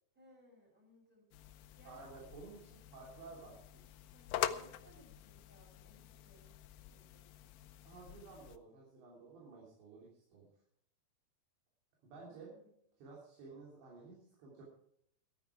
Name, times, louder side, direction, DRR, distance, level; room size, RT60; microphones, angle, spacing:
voice 1, 0.1-1.3 1.7-2.2 4.1-7.3 12.2-12.7, left 1 dB, ahead, -1 dB, 6.0 m, -64 dB
sound 1, 1.3-8.6, left 12 dB, 80° left, 2.1 m, -45 dB
voice 2, 1.8-3.6 7.8-10.5 12.0-12.5 13.0-14.6, right 4 dB, 85° right, -4 dB, 5.6 m, -53 dB
14.0 x 12.5 x 4.8 m, 0.71 s
omnidirectional pair, 4.9 m